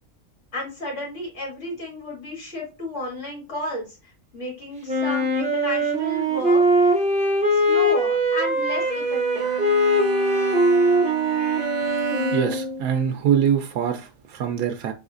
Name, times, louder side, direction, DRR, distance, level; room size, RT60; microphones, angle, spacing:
voice 1, 0.5-4.0 4.3-6.9 7.5-9.6, left 1 dB, 55° left, 3.2 m, -33 dB
Wind instrument woodwind instrument, 4.9-12.9, right 1 dB, 5° right, 1.5 m, -21 dB
Bowed string instrument, 8.7-12.8, right 3 dB, 55° right, 0.6 m, -31 dB
voice 2, 12.3-14.9, right 8 dB, 85° right, 1.1 m, -23 dB
4.2 x 4.0 x 2.4 m
omnidirectional pair, 1.5 m